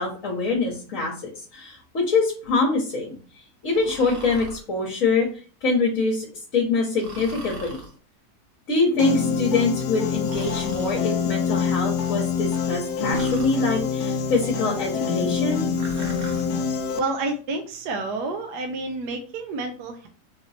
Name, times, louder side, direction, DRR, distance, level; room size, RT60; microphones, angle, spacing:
voice 1, 0.0-3.2 3.6-5.3 5.6-6.3 6.5-7.8 8.7-15.6, left 3 dB, 55° left, -1 dB, 1.3 m, -24 dB
Breathing, 3.7-4.6 7.0-7.9 10.2-11.0 13.1-13.6 15.7-16.5, right 1 dB, 40° right, 0.9 m, -39 dB
Piano, 9.0-17.0, left 6 dB, 70° left, 1.1 m, -25 dB
voice 2, 16.9-20.1, right 3 dB, 75° right, 4 dB, 1.2 m, -29 dB
4.0 x 2.9 x 4.1 m, 0.40 s
omnidirectional pair, 1.8 m